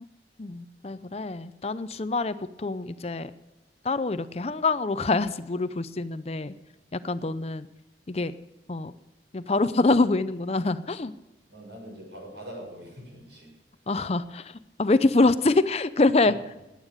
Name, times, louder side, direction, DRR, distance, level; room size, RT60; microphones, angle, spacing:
voice 1, 0.4-3.3 3.8-6.5 6.9-7.7 8.1-8.3 8.7-8.9 9.3-11.1 13.9-16.4, left 3 dB, 35° left, 13 dB, 0.5 m, -25 dB
voice 2, 11.5-13.5 16.3-16.4, equal, 75° right, 1 dB, 6.5 m, -43 dB
19.5 x 9.0 x 6.6 m, 1.0 s
head